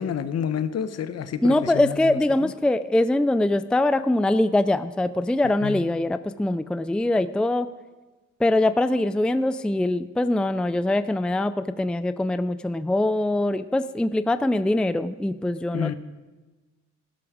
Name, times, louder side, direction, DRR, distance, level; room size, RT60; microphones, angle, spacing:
voice 1, 0.0-2.5 5.6-5.8 15.7-15.9, left 8 dB, 55° left, 12 dB, 1.0 m, -29 dB
voice 2, 1.4-7.7 8.4-15.9, left 1 dB, 5° left, 12 dB, 0.4 m, -23 dB
16.5 x 12.0 x 5.0 m, 1.2 s
cardioid pair, 90°, 30 cm